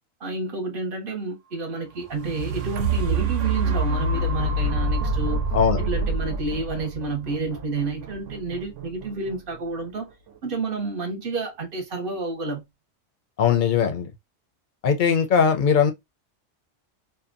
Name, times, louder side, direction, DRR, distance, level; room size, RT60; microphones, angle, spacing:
voice 1, 0.2-5.5 5.8-10.1 10.4-12.6, right 3 dB, 50° right, 0.9 m, -30 dB
sound 1, 2.0-10.0 10.6-10.7, right 2 dB, 85° right, 0.9 m, -27 dB
voice 2, 13.4-14.1 14.8-15.9, left 7 dB, 55° left, 0.6 m, -20 dB
2.7 x 2.1 x 2.5 m
omnidirectional pair, 1.2 m